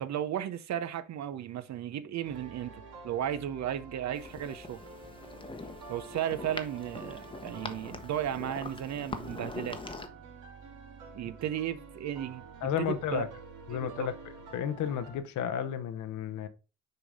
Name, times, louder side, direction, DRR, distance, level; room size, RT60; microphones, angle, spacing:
voice 1, 0.0-4.8 5.9-9.8 11.1-12.4 12.8-13.3 13.7-14.1, right 10 dB, 65° right, 0.8 m, -35 dB
sound 1, 2.2-15.2, right 3 dB, 85° right, 2.2 m, -49 dB
sound 2, 4.1-10.1, left 3 dB, 15° left, 0.9 m, -43 dB
voice 2, 12.6-13.3 13.7-14.1 14.5-16.5, left 9 dB, 75° left, 0.9 m, -32 dB
6.7 x 3.9 x 4.8 m
cardioid pair, 90°, 30 cm